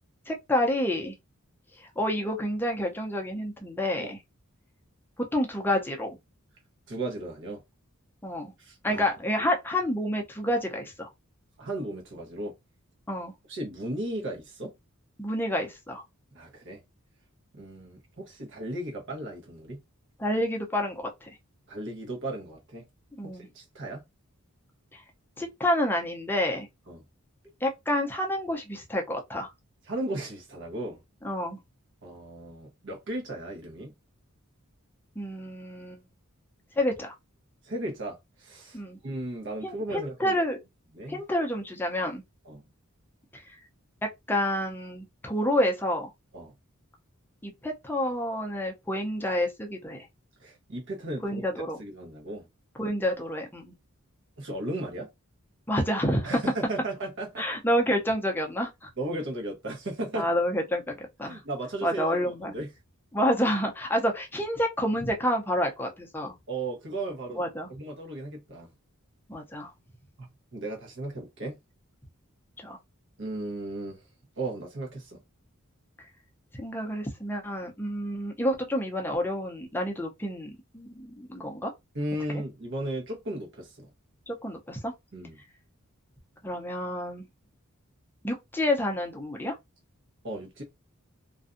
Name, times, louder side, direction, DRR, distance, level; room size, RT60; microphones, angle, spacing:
voice 1, 0.3-1.2 1.8-4.2 5.2-6.2 8.2-8.5 8.8-11.1 13.1-13.3 15.2-16.0 20.2-21.3 23.2-23.5 24.9-25.0 25.4-26.7 27.6-29.5 31.2-31.6 35.2-36.0 36.8-37.1 38.7-39.0 39.6-40.6 41.1-42.2 43.3-43.4 44.3-46.1 47.4-50.1 51.2-51.8 52.8-53.7 55.7-56.4 57.4-58.9 60.2-61.4 61.8-62.5 63.1-66.3 67.4-67.7 69.3-69.7 72.6-72.8 76.5-81.7 82.3-82.4 84.3-84.9 86.4-87.3 88.2-89.6, equal, 10° left, 0.5 m, -29 dB
voice 2, 6.9-7.6 8.6-9.0 11.6-12.5 13.5-14.7 16.3-16.8 17.5-19.8 21.7-22.9 23.2-24.0 26.9-27.0 29.9-31.0 32.0-33.9 37.6-40.4 40.9-41.2 42.4-42.6 46.3-46.5 50.4-51.4 51.8-52.5 54.4-55.1 56.2-57.6 59.0-60.3 61.2-62.7 66.5-67.4 67.7-68.7 70.5-71.6 73.2-74.0 74.4-75.2 81.9-83.9 85.1-85.4 90.2-90.6, right 1 dB, 60° right, 0.9 m, -35 dB
2.5 x 2.2 x 2.5 m
head